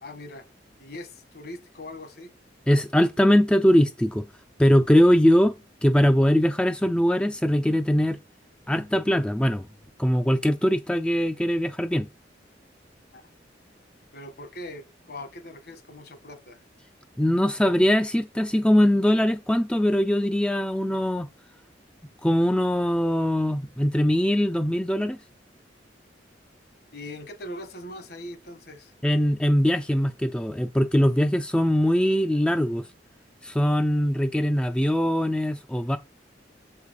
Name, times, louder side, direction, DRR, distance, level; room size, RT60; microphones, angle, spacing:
voice 1, 0.0-0.5 0.8-2.3 13.1-13.3 14.1-16.6 26.9-28.9, left 1 dB, 60° left, 1.5 m, -41 dB
voice 2, 2.7-4.3 4.6-5.6 5.8-8.2 8.7-9.7 10.0-12.1 17.2-21.3 22.2-25.2 29.0-32.8 33.4-36.0, equal, 5° left, 0.4 m, -21 dB
7.4 x 5.3 x 4.7 m
head